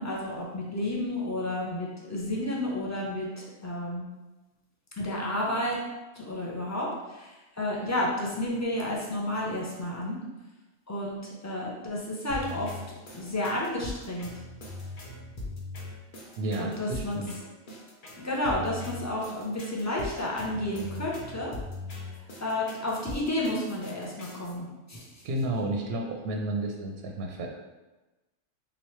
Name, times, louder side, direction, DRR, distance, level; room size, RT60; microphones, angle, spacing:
voice 1, 0.0-4.1 5.0-5.8 6.1-10.2 10.9-12.8 13.1-14.3 16.6-17.2 18.2-21.6 22.4-25.2, left 1 dB, 25° left, -4 dB, 0.4 m, -31 dB
sound 1, 12.3-24.5, left 2 dB, 50° left, 0.7 m, -41 dB
voice 2, 16.4-17.3 25.2-27.5, right 1 dB, 60° right, 1 dB, 0.7 m, -31 dB
3.7 x 3.0 x 3.1 m, 1.1 s
omnidirectional pair, 1.3 m